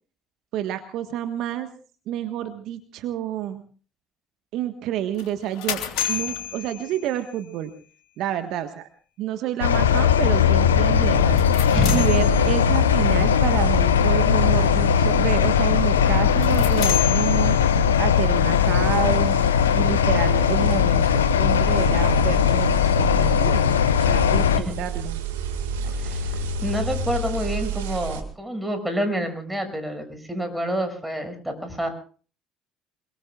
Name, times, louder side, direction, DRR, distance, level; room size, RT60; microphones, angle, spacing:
voice 1, 0.5-1.7 2.1-3.6 4.5-5.8 6.1-7.7 8.2-8.9 9.2-19.3 19.7-23.7 24.1-25.2, right 11 dB, 60° right, 8 dB, 1.4 m, -29 dB
sound 1, 5.2-7.4 11.2-12.9 16.2-18.0, left 10 dB, 70° left, 3.2 m, -31 dB
sound 2, 9.6-24.6, left 8 dB, 85° left, 0.9 m, -19 dB
sound 3, 10.9-28.2, right 2 dB, 80° right, 2.0 m, -32 dB
voice 2, 11.7-12.1 24.6-24.7 25.9-31.9, right 1 dB, 5° right, 6 dB, 6.4 m, -28 dB
26.5 x 22.5 x 2.4 m, 0.40 s
hypercardioid pair, 60°, 0 cm